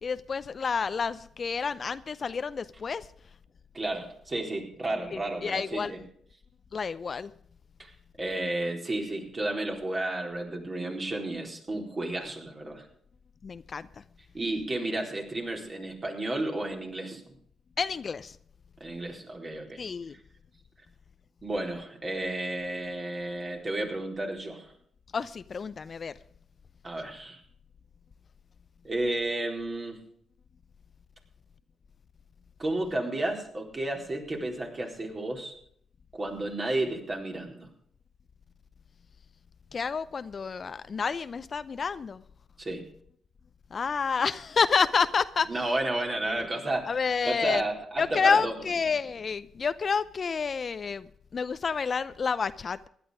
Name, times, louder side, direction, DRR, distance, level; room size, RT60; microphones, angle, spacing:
voice 1, 0.0-3.1 5.1-5.9 6.7-7.3 13.4-13.9 17.8-18.4 19.8-20.2 25.1-26.1 39.7-42.2 43.7-45.7 46.1-46.4 46.9-47.6 48.0-52.9, left 5 dB, 50° left, 0.6 m, -29 dB
voice 2, 3.7-6.0 7.8-7.9 8.2-12.9 14.3-17.2 18.8-19.8 21.4-24.7 26.8-27.4 28.8-30.0 32.6-35.5 36.1-37.7 42.6-42.8 45.5-47.0 47.2-48.5, right 2 dB, 35° right, 4.1 m, -32 dB
16.0 x 11.0 x 5.0 m
supercardioid pair, 55°, 0 cm